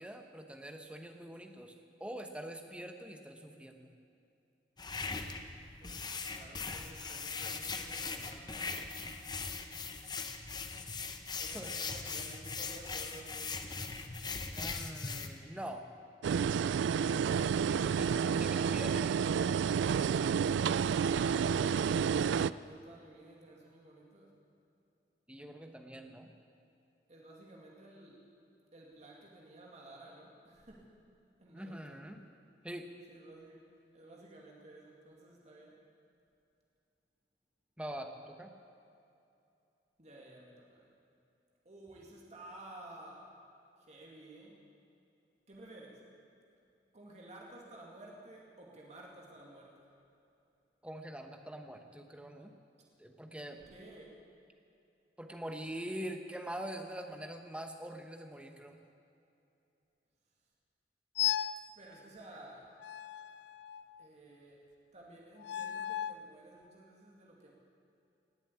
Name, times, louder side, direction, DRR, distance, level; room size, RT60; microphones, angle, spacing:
voice 1, 0.0-1.7 2.0-3.9 11.5-11.7 14.6-15.9 17.8-19.4 25.3-26.3 31.5-32.2 32.6-32.9 37.8-38.5 50.8-52.5 53.0-53.6 55.2-58.8, right 1 dB, 5° right, 5 dB, 1.1 m, -44 dB
sound 1, 4.8-15.3, left 4 dB, 25° left, 0.8 m, -40 dB
voice 2, 5.8-8.8 11.4-13.6 20.9-24.3 27.1-28.2 28.7-30.9 31.4-32.0 33.1-33.6 33.9-35.8 40.0-40.9 41.6-43.4 43.8-44.6 45.5-46.0 46.9-49.9 53.1-53.2 53.5-54.2 61.8-62.8 64.0-64.6 64.9-67.5, right 1 dB, 40° right, -2 dB, 2.3 m, -53 dB
sound 2, 16.2-22.5, right 7 dB, 85° right, 0.3 m, -30 dB
sound 3, 61.2-61.7 62.8-64.1 65.4-66.3, left 11 dB, 70° left, 0.4 m, -36 dB
19.0 x 7.4 x 8.6 m, 2.7 s
head